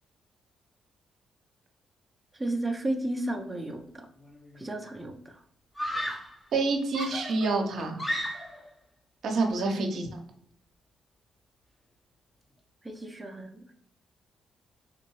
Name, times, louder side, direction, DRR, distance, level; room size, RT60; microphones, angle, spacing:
voice 1, 2.3-4.1 4.5-5.4 12.8-13.6, right 1 dB, 15° right, 3 dB, 0.6 m, -33 dB
Screaming, 4.2-4.7 5.8-6.4 6.9-8.7, equal, 20° left, 0.8 m, -34 dB
voice 2, 6.5-8.0 9.2-10.2, right 3 dB, 65° right, 3 dB, 0.7 m, -27 dB
3.8 x 2.6 x 3.0 m, 0.67 s
hypercardioid pair, 50°, 0 cm